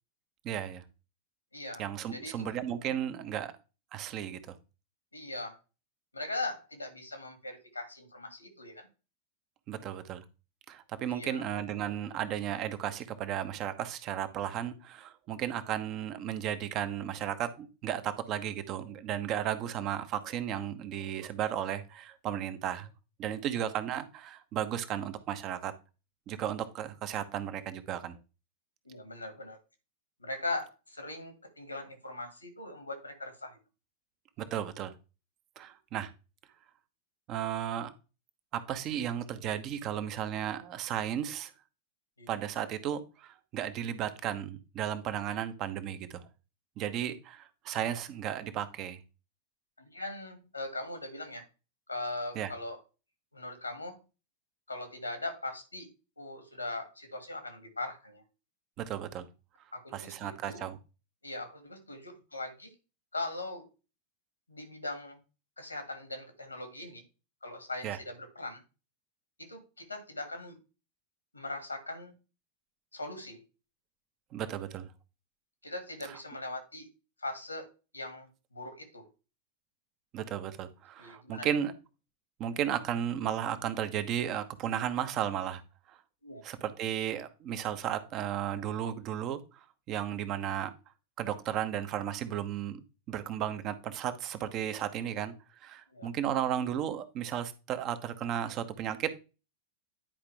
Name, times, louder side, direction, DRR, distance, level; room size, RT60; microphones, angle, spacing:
voice 1, 0.4-0.8 1.8-3.5 3.9-4.5 9.7-10.2 10.7-22.9 23.2-25.7 26.3-28.1 34.4-34.9 35.6-36.1 37.3-37.9 38.5-41.5 42.3-46.2 46.8-49.0 52.3-52.5 58.8-59.2 59.9-60.8 67.8-68.0 74.3-74.9 76.1-76.2 80.1-81.7 82.4-85.6 85.9-86.0 86.4-89.4 89.9-90.7 91.2-95.3 95.6-99.2, right 10 dB, 35° right, 1.0 m, -34 dB
voice 2, 1.5-1.8 2.1-2.5 5.1-5.6 6.1-8.9 11.1-11.4 23.4-23.7 28.9-29.6 30.2-33.5 42.2-42.3 49.8-51.4 51.9-52.8 53.3-54.0 54.7-55.9 56.2-58.2 59.7-60.6 61.2-62.7 63.1-63.7 64.5-65.2 65.6-67.0 67.4-68.6 69.4-70.6 71.3-72.1 72.9-73.4 75.6-76.9 77.2-77.7 77.9-79.1 81.0-81.5 86.2-86.4 95.9-96.1, left 2 dB, 85° left, 2.2 m, -40 dB
10.5 x 4.8 x 3.4 m
figure-of-eight pair, 90°, 0 cm